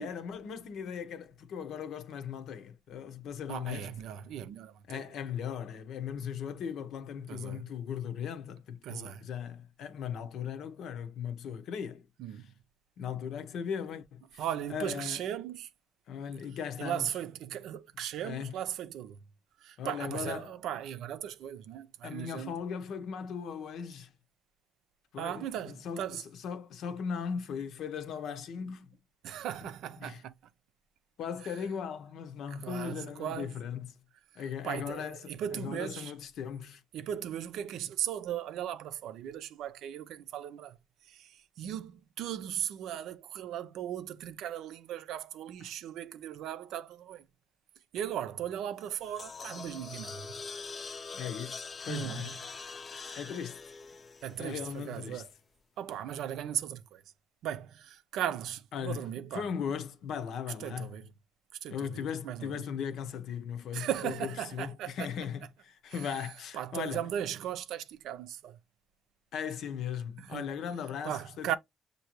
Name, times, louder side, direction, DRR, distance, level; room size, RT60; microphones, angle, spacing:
voice 1, 0.0-3.9 4.9-12.1 13.0-14.4 14.7-15.2 16.1-17.1 18.2-18.5 19.8-20.5 22.0-24.1 25.1-28.9 29.6-29.7 30.0-30.2 31.2-33.9 34.3-36.8 45.6-45.7 51.1-52.3 53.1-53.6 54.4-55.2 58.7-59.0 59.3-60.9 61.7-64.1 64.5-67.0 69.3-71.6, left 7 dB, 75° left, 0.8 m, -38 dB
voice 2, 3.5-5.0 7.3-7.6 8.8-9.2 12.2-12.5 14.4-15.7 16.8-19.2 19.6-22.5 25.2-26.2 29.2-30.3 32.5-33.6 34.6-36.1 36.9-40.8 41.1-47.3 47.9-50.3 51.9-52.3 53.1-53.2 54.2-55.3 55.8-57.0 57.4-59.5 60.6-61.1 61.6-62.7 63.7-65.1 66.5-68.6 70.2-70.5 71.0-71.6, right 10 dB, 85° right, 0.5 m, -37 dB
sound 1, 48.8-55.1, left 4 dB, 40° left, 0.5 m, -44 dB
6.6 x 2.7 x 3.0 m
cardioid pair, 90°, 0 cm